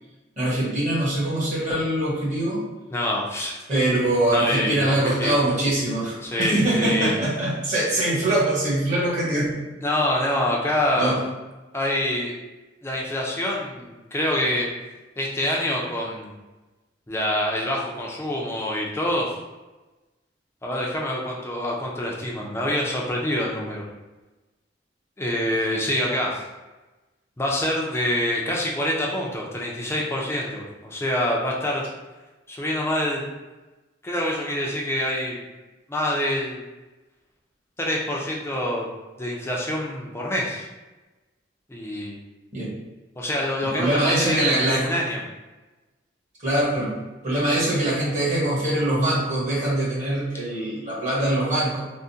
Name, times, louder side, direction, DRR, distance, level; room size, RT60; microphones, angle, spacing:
voice 1, 0.4-2.6 3.7-9.6 11.0-11.2 42.5-42.7 43.8-44.9 46.4-46.9 47.2-51.8, right 1 dB, 40° right, -7 dB, 1.2 m, -23 dB
voice 2, 2.9-3.6 4.3-5.4 6.2-7.1 9.8-11.2 11.7-12.3 12.8-14.7 15.2-16.3 17.1-19.3 20.6-23.8 25.2-26.4 27.4-31.8 32.5-33.2 34.0-35.4 35.9-36.6 37.8-38.9 39.2-40.7 41.7-42.2 43.2-45.2, left 1 dB, 15° left, -3 dB, 0.5 m, -26 dB
3.6 x 2.1 x 2.6 m, 1.1 s
head